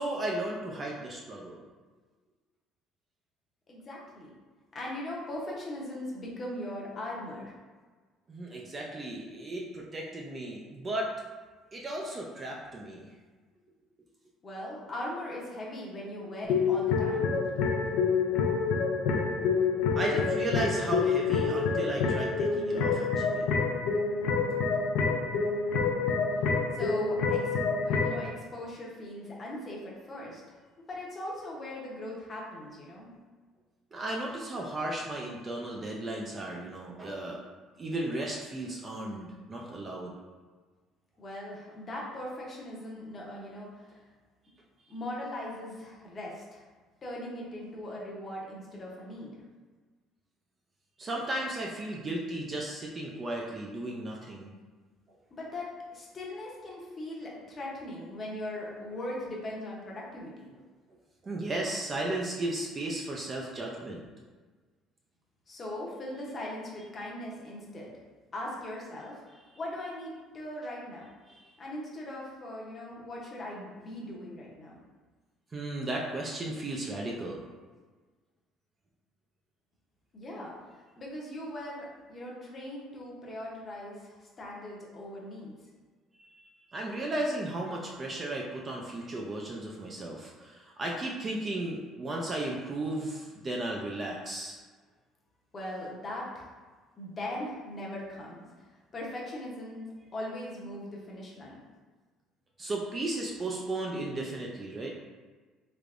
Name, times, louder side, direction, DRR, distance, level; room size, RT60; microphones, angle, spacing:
voice 1, 0.0-1.6 8.3-11.1 11.7-13.1 20.0-23.5 33.9-37.5 37.8-40.1 44.8-44.9 51.0-54.5 61.2-64.0 71.3-71.5 75.5-77.5 86.2-94.6 102.6-104.9, right 1 dB, 25° right, -2 dB, 0.4 m, -35 dB
voice 2, 3.7-4.3 4.7-7.5 14.4-17.3 25.7-25.9 26.7-27.5 27.8-30.4 30.9-33.1 41.2-44.0 44.9-46.6 47.0-49.4 55.3-60.5 65.5-67.9 68.3-69.2 69.6-71.1 71.6-74.7 80.1-80.5 81.0-85.6 95.5-96.5 97.0-98.7 98.9-101.6, left 1 dB, 25° left, -4 dB, 0.8 m, -39 dB
sound 1, 16.4-28.2, left 5 dB, 75° left, 0.5 m, -27 dB
3.3 x 3.3 x 2.5 m, 1.4 s
cardioid pair, 150°, 0 cm